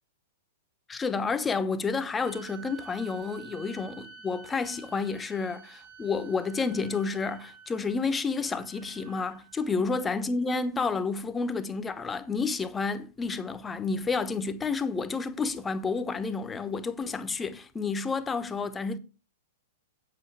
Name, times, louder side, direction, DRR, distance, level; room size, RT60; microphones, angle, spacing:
voice 1, 0.9-19.0, left 4 dB, 15° left, 1.0 m, -30 dB
sound 1, 2.2-9.7, right 7 dB, 55° right, 3.1 m, -50 dB
8.2 x 8.0 x 4.9 m
hypercardioid pair, 110°, 0 cm